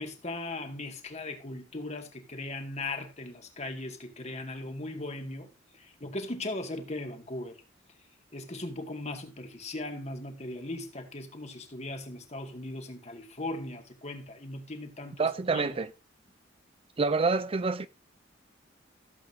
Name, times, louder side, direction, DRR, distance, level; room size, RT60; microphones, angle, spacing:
voice 1, 0.0-7.6 8.3-15.8, left 2 dB, 35° left, 2.1 m, -38 dB
voice 2, 15.2-15.9 17.0-17.9, right 4 dB, 30° right, 0.4 m, -27 dB
15.5 x 8.1 x 2.7 m
head